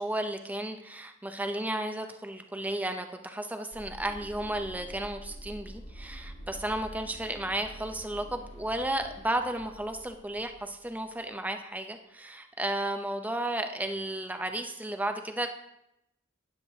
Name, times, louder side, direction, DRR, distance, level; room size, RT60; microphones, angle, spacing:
voice 1, 0.0-15.5, right 1 dB, 10° right, 6 dB, 0.7 m, -33 dB
sound 1, 3.7-11.1, equal, 80° left, 4.2 m, -47 dB
12.5 x 9.8 x 2.8 m, 0.83 s
head